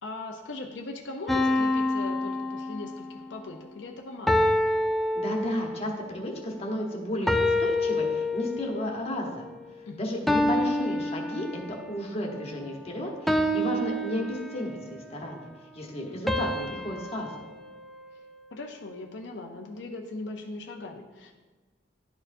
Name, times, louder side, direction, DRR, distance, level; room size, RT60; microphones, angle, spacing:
voice 1, 0.0-4.4 9.9-10.2 18.5-21.3, left 2 dB, 80° left, 1 dB, 0.6 m, -39 dB
sound 1, 1.3-3.2 4.3-5.9 7.3-8.8 10.3-11.9 13.3-14.9 16.3-18.6, left 1 dB, ahead, 0.3 m, -27 dB
voice 2, 5.1-9.5 10.0-15.5 15.7-17.3, equal, 35° left, 0 dB, 1.1 m, -33 dB
11.0 x 4.4 x 2.6 m, 1.3 s
head